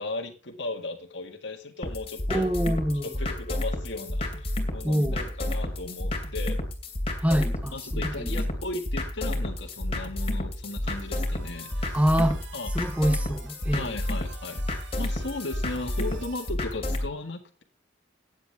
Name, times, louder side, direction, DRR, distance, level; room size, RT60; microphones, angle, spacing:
voice 1, 0.0-2.5 3.0-6.6 7.7-12.0 12.5-12.7 13.7-17.6, left 2 dB, 70° left, 1.9 m, -36 dB
sound 1, 1.8-17.1, left 1 dB, 30° left, 2.7 m, -31 dB
Chink clink, 2.3-7.5, left 3 dB, 90° left, 2.0 m, -49 dB
voice 2, 2.3-3.1 4.8-5.3 7.2-8.4 11.9-12.4 12.7-13.9, equal, 5° right, 1.0 m, -26 dB
sound 2, 10.8-16.5, right 6 dB, 75° right, 2.2 m, -49 dB
15.0 x 9.7 x 3.5 m
head